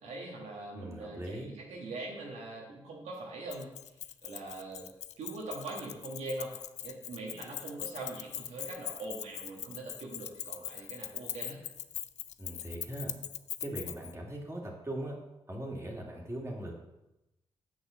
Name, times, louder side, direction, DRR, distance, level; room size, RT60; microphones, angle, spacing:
voice 1, 0.0-3.7 4.2-4.9 5.2-6.5 6.8-11.6, right 2 dB, 80° right, -2 dB, 1.5 m, -42 dB
voice 2, 0.7-1.5 12.4-13.1 13.6-15.2 15.5-16.8, right 1 dB, 25° right, -2 dB, 2.6 m, -40 dB
Keys jangling, 3.5-14.1, left 11 dB, 80° left, 0.4 m, -41 dB
6.3 x 5.5 x 6.7 m, 0.94 s
supercardioid pair, 45°, 12 cm